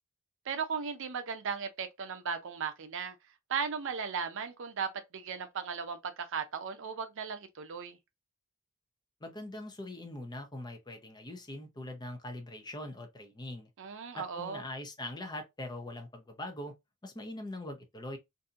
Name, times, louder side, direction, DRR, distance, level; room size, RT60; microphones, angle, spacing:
voice 1, 0.5-3.2 3.5-8.0 13.8-14.6, right 6 dB, 60° right, 0.6 m, -36 dB
voice 2, 9.2-13.7 14.1-16.7 17.0-18.2, left 1 dB, 20° left, 0.6 m, -42 dB
2.7 x 2.6 x 2.4 m
head